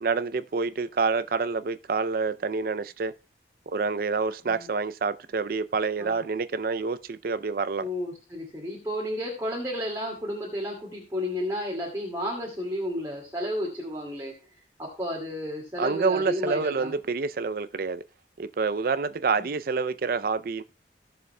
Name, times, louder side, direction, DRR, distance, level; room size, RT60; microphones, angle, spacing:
voice 1, 0.0-3.1 3.7-7.9 15.8-18.0 18.4-20.6, right 4 dB, 55° right, 0.4 m, -27 dB
voice 2, 7.8-14.3 14.8-16.9 19.4-19.5, left 1 dB, 15° right, 2.1 m, -32 dB
17.0 x 6.8 x 2.2 m
head